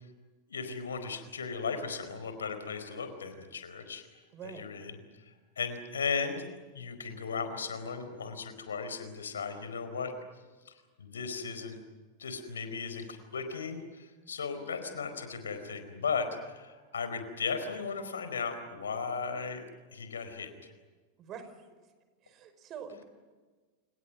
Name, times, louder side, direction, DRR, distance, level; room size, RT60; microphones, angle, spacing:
voice 1, 0.5-4.0 4.4-4.9 5.6-6.5 6.7-10.1 10.7-10.8 11.0-11.8 12.2-19.6 19.9-20.7, left 5 dB, 70° left, 9 dB, 4.5 m, -36 dB
voice 2, 4.3-4.7 21.2-21.5 22.2-23.1, right 7 dB, 30° right, 9 dB, 5.1 m, -44 dB
29.5 x 29.0 x 6.2 m, 1.4 s
figure-of-eight pair, 90°, 0 cm